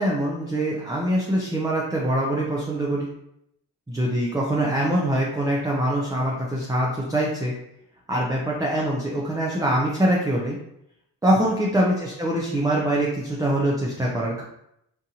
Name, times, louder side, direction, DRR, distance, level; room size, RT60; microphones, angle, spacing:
voice 1, 0.0-3.1 3.9-7.5 8.1-10.6 11.2-14.4, right 1 dB, 10° right, -4 dB, 0.5 m, -24 dB
3.8 x 2.6 x 2.8 m, 0.77 s
wide cardioid pair, 110°, 42 cm